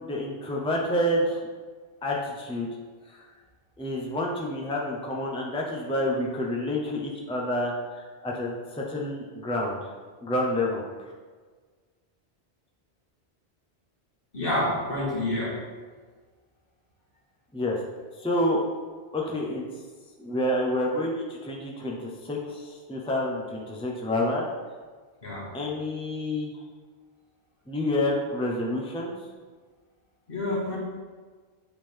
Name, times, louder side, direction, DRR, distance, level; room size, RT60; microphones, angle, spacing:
voice 1, 0.0-1.4 2.0-2.7 3.1-3.3 3.8-9.9 10.2-11.1 17.5-17.8 18.2-18.6 19.1-19.7 20.2-24.4 25.5-26.5 27.7-29.1, left 1 dB, 5° left, -2 dB, 0.7 m, -28 dB
voice 2, 14.3-15.6 25.2-25.5 30.3-30.8, left 1 dB, 60° left, -6 dB, 2.0 m, -28 dB
8.6 x 3.8 x 3.5 m, 1.5 s
omnidirectional pair, 1.1 m